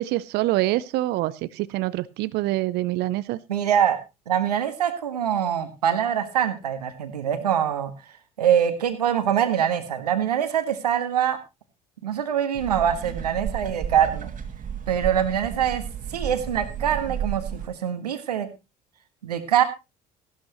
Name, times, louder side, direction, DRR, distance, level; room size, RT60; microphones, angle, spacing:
voice 1, 0.0-3.4, right 17 dB, 60° right, 0.6 m, -25 dB
voice 2, 3.5-4.0 4.3-7.9 8.4-11.4 12.0-14.3 14.9-15.8 16.1-18.5 19.2-19.6, right 9 dB, 85° right, 1.6 m, -24 dB
sound 1, 12.6-17.7, right 8 dB, 45° right, 2.2 m, -33 dB
14.5 x 12.5 x 3.0 m
hypercardioid pair, 60°, 20 cm